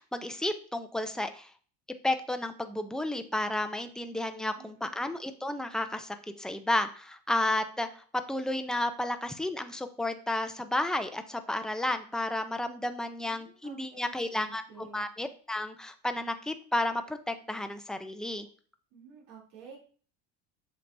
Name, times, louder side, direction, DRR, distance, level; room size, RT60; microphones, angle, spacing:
voice 1, 0.0-1.5 2.0-18.5, left 1 dB, ahead, 7 dB, 0.6 m, -32 dB
voice 2, 4.6-4.9 13.2-15.1 18.9-19.8, right 6 dB, 75° right, -3 dB, 3.2 m, -51 dB
7.6 x 5.8 x 2.7 m, 0.42 s
supercardioid pair, 115°, 34 cm